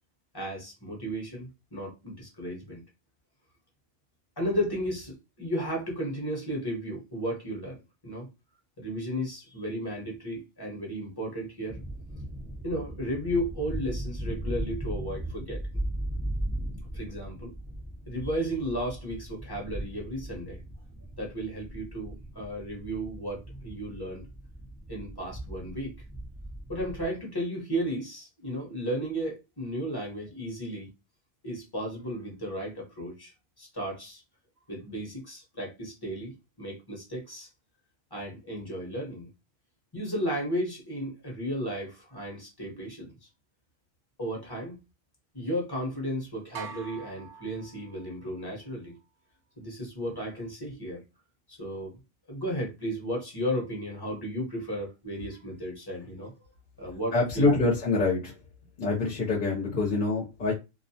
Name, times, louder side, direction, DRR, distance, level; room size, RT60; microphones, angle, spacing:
voice 1, 0.3-2.8 4.4-7.8 8.0-8.3 8.8-11.8 12.6-15.6 16.9-17.5 18.1-20.6 21.2-24.2 24.9-25.9 26.7-30.9 31.4-33.3 33.6-34.2 34.7-37.5 38.1-39.3 39.9-43.1 44.2-44.8 45.3-48.9 49.6-51.0 51.5-52.0 52.3-56.3 56.8-57.5, equal, 20° left, 0.9 m, -34 dB
sound 1, 11.7-27.0, right 1 dB, 10° right, 0.9 m, -38 dB
sound 2, 46.5-48.3, right 6 dB, 65° right, 1.0 m, -44 dB
voice 2, 57.1-58.4 58.8-60.5, left 3 dB, 45° left, 0.8 m, -25 dB
2.4 x 2.1 x 2.7 m
omnidirectional pair, 1.3 m